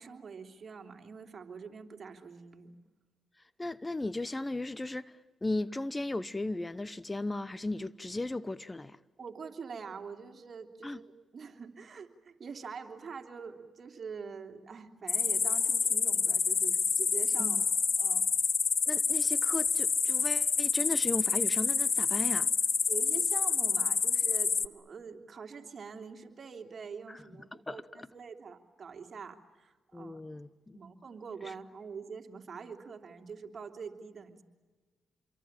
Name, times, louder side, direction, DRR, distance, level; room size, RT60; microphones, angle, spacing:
voice 1, 0.0-2.7 9.2-17.6 18.0-18.2 22.9-30.3 30.7-34.4, right 5 dB, 50° right, 3.2 m, -45 dB
voice 2, 3.6-5.1 5.4-9.0 10.8-11.0 17.4-17.6 18.9-22.5 27.1-27.2 27.7-28.1 29.9-30.8 31.4-31.5, left 2 dB, 20° left, 0.9 m, -36 dB
sound 1, 15.1-24.7, left 5 dB, 55° left, 0.9 m, -28 dB
28.0 x 23.5 x 9.0 m
supercardioid pair, 55°, 0 cm